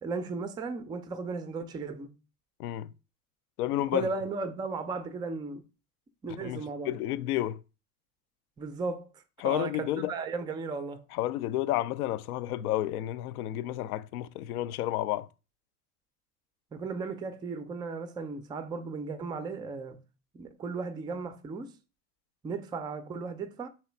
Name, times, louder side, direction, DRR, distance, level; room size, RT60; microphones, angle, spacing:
voice 1, 0.0-2.1 3.8-5.6 6.2-6.9 8.6-9.1 9.4-11.0 16.7-20.0 20.3-21.7 22.4-23.7, right 4 dB, 10° right, 0.3 m, -35 dB
voice 2, 3.6-4.1 6.3-7.6 9.4-10.1 11.1-15.3, left 14 dB, 80° left, 0.5 m, -31 dB
3.0 x 2.9 x 4.4 m
hypercardioid pair, 90°, 44 cm